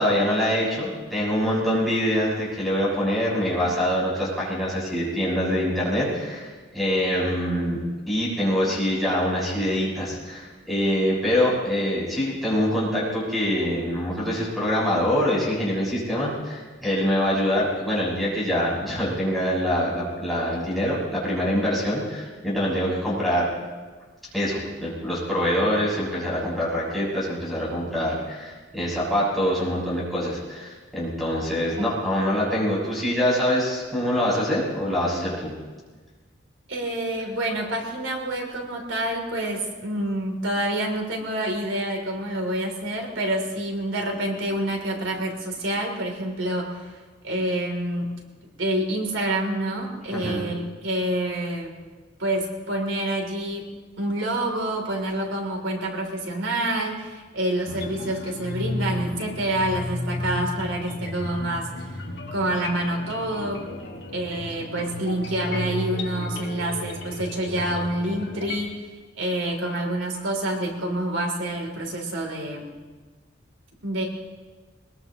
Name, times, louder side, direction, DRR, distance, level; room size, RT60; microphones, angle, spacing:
voice 1, 0.0-7.8 8.1-23.5 24.3-35.5 50.1-50.5, equal, ahead, -8 dB, 6.6 m, -24 dB
voice 2, 36.7-46.9 47.2-48.1 48.4-51.8 52.2-53.7 54.0-61.9 62.3-63.6 64.1-68.8 69.2-72.7 73.8-74.0, right 1 dB, 90° right, 1 dB, 3.1 m, -27 dB
sound 1, 57.7-68.6, left 1 dB, 60° left, 2.3 m, -33 dB
21.5 x 21.0 x 3.0 m, 1.4 s
head